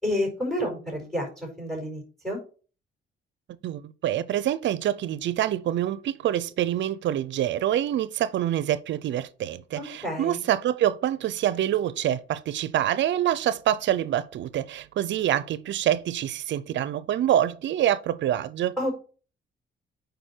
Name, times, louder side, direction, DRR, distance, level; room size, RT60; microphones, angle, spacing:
voice 1, 0.0-2.4 9.8-10.4 18.8-18.9, left 1 dB, 5° left, 4.7 m, -30 dB
voice 2, 3.6-18.8, right 11 dB, 65° right, 0.5 m, -26 dB
9.0 x 5.2 x 4.4 m
cardioid pair, 90°, 20 cm